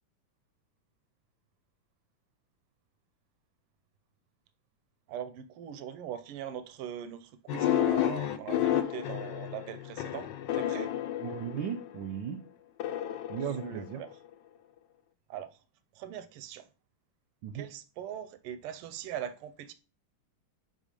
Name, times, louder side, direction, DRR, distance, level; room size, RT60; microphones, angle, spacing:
voice 1, 5.1-10.9 13.6-14.2 15.3-15.5 16.0-16.7 17.5-19.7, right 9 dB, 90° right, 1.6 m, -41 dB
sound 1, 7.5-12.0 12.8-14.3, left 11 dB, 70° left, 1.2 m, -31 dB
voice 2, 11.2-12.4 13.3-14.0 17.4-17.7, right 9 dB, 70° right, 1.2 m, -36 dB
6.4 x 3.9 x 5.1 m
omnidirectional pair, 2.4 m